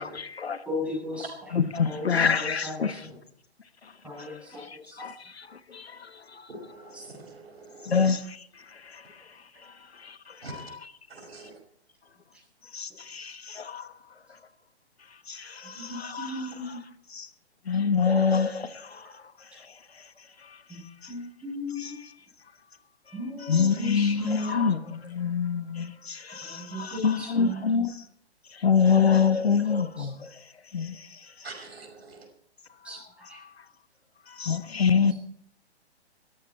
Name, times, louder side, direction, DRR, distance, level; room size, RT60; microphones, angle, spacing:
voice 1, 0.0-0.6 1.5-3.0 3.8-6.5 7.8-10.8 12.6-14.0 14.3-14.4 15.3-16.8 17.1-17.3 17.6-21.1 21.8-21.9 23.4-28.0 28.5-31.3 33.4-33.6 34.3-35.1, left 6 dB, 65° left, 1.2 m, -27 dB
voice 2, 0.7-1.5 1.8-3.1 4.0-5.1 6.9-7.1 15.6-16.8 19.0-19.1 20.7-20.8 21.1-22.0 23.1-24.7 26.4-27.8 30.0-30.1 32.8-33.4, left 1 dB, 5° right, 7.7 m, -36 dB
voice 3, 6.5-8.0 10.4-10.6 11.1-11.6 31.4-32.3, right 2 dB, 65° right, 5.6 m, -44 dB
20.0 x 13.5 x 4.4 m
figure-of-eight pair, 125°, 33 cm